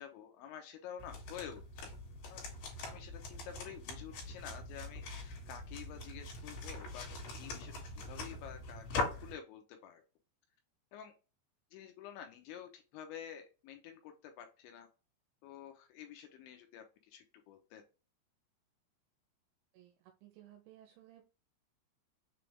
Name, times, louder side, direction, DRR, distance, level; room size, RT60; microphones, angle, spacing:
voice 1, 0.0-1.9 2.2-2.4 2.8-7.7 8.1-8.8 9.2-10.0 10.9-11.1 11.7-14.9 15.4-17.8, left 9 dB, 85° left, 5 dB, 2.9 m, -49 dB
sound 1, 1.0-9.3, left 2 dB, 65° left, 3.7 m, -42 dB
voice 2, 20.2-21.2, right 13 dB, 80° right, 4 dB, 3.0 m, -58 dB
7.0 x 3.2 x 2.2 m, 0.33 s
omnidirectional pair, 5.6 m